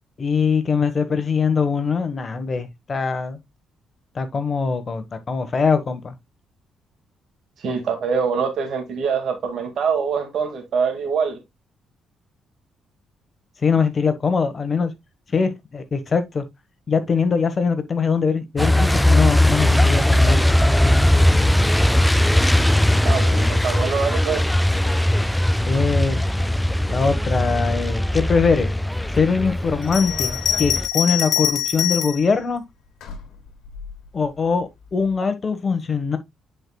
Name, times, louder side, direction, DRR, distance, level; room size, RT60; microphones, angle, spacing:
voice 1, 0.2-3.4 4.1-6.1 13.6-14.9 15.3-16.4 16.9-20.5 23.4-23.5 25.6-26.2 26.9-28.7 29.1-32.6 34.1-36.2, left 5 dB, 40° left, 1.3 m, -22 dB
voice 2, 7.6-11.4 23.0-24.5, right 6 dB, 65° right, 2.1 m, -24 dB
Truck, 18.6-30.9, left 1 dB, 5° left, 0.3 m, -19 dB
Bell, 29.8-32.3 33.0-33.9, left 10 dB, 75° left, 1.7 m, -24 dB
9.8 x 4.8 x 2.3 m
cardioid pair, 90°, 0 cm